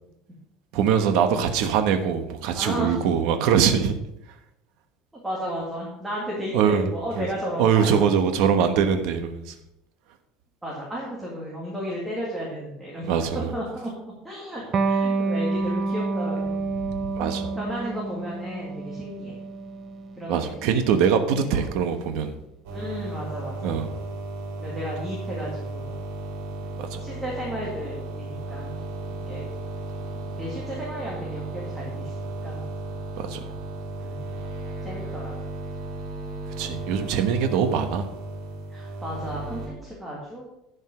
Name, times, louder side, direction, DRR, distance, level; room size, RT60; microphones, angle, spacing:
voice 1, 0.7-3.9 6.5-6.9 7.2-7.3 7.6-9.5 13.1-13.5 17.1-17.5 20.3-22.4 23.6-23.9 26.8-27.0 33.2-33.4 36.6-38.1, right 7 dB, 60° right, 8 dB, 1.1 m, -22 dB
voice 2, 2.5-3.0 5.2-8.1 10.6-13.1 13.5-13.9 14.2-16.6 17.4-19.4 20.2-20.7 21.5-21.6 22.7-23.8 24.6-26.0 27.0-29.5 30.2-32.6 34.0-34.3 34.8-35.3 38.7-40.4, equal, 5° right, -5 dB, 1.9 m, -34 dB
Electric guitar, 14.7-21.9, right 3 dB, 25° right, 0.7 m, -29 dB
sound 1, 22.6-39.7, right 2 dB, 80° right, 4.0 m, -35 dB
11.5 x 5.3 x 6.3 m, 0.87 s
cardioid pair, 175°, 0 cm